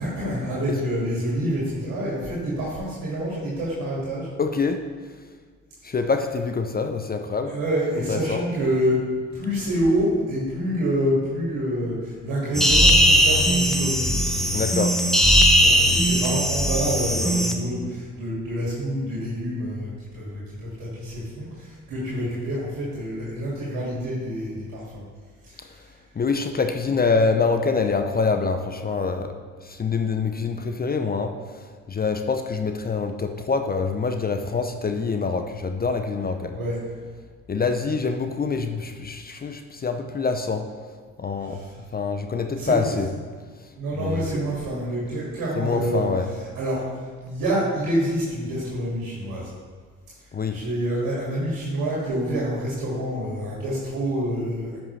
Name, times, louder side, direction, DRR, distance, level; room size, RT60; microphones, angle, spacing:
voice 1, 0.0-4.3 7.5-9.0 9.3-14.4 15.5-25.0 25.4-25.9 36.5-37.0 41.4-41.8 42.5-42.9 43.7-49.5 50.5-54.8, equal, 70° right, -7 dB, 2.4 m, -27 dB
voice 2, 4.4-4.8 5.8-7.5 8.1-8.4 14.5-14.9 26.2-29.3 29.6-36.6 37.5-40.7 41.2-41.6 41.9-43.1 44.0-44.3 45.6-46.3 50.3-50.6, left 4 dB, 25° left, 6 dB, 0.6 m, -25 dB
sound 1, 12.5-17.5, equal, ahead, 1.0 m, -19 dB
10.5 x 6.1 x 3.3 m, 1.5 s
hypercardioid pair, 55°, 35 cm